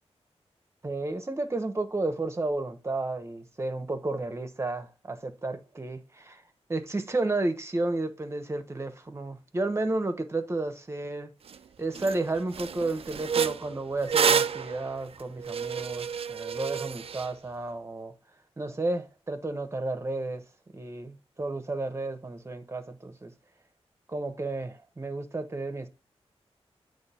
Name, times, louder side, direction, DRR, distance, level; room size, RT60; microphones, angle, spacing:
voice 1, 0.8-6.4 6.7-11.3 11.8-18.1 18.6-20.4 20.7-23.3 24.1-25.9, right 2 dB, 25° right, 1.0 m, -32 dB
sound 1, 11.5-11.6 12.0-12.2 12.5-17.3, right 7 dB, 65° right, 0.4 m, -29 dB
8.9 x 3.2 x 4.3 m
wide cardioid pair, 120°, 11 cm